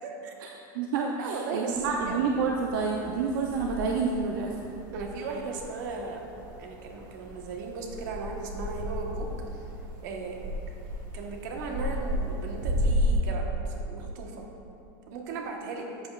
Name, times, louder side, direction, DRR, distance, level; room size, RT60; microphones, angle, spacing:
voice 1, 0.0-0.3 1.2-2.2 4.9-6.2 6.6-9.3 10.0-10.4 11.1-14.4 15.1-15.9, right 4 dB, 60° right, 1 dB, 1.2 m, -36 dB
voice 2, 0.7-4.6, right 5 dB, 80° right, 0 dB, 0.6 m, -28 dB
sound 1, 1.7-13.1, equal, 45° right, 1.4 m, -34 dB
13.0 x 7.0 x 2.4 m, 2.8 s
supercardioid pair, 175°, 11 cm